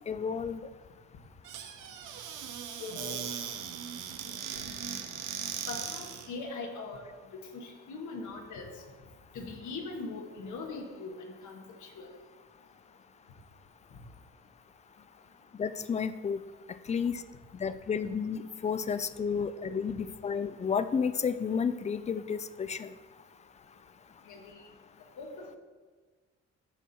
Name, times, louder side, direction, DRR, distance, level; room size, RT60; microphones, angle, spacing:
voice 1, 0.1-0.6 15.6-16.4 16.9-17.2 17.5-22.9, left 6 dB, 25° left, 13 dB, 0.4 m, -31 dB
Squeak / Cupboard open or close, 1.4-6.3, right 8 dB, 85° right, 0.8 m, -39 dB
voice 2, 2.8-3.2 4.5-4.6 5.7-7.0 7.3-8.7 9.3-12.1 24.3-24.6 25.2-25.6, left 3 dB, 80° left, 2 dB, 1.5 m, -41 dB
11.5 x 4.3 x 4.1 m, 1.4 s
cardioid pair, 90°, 30 cm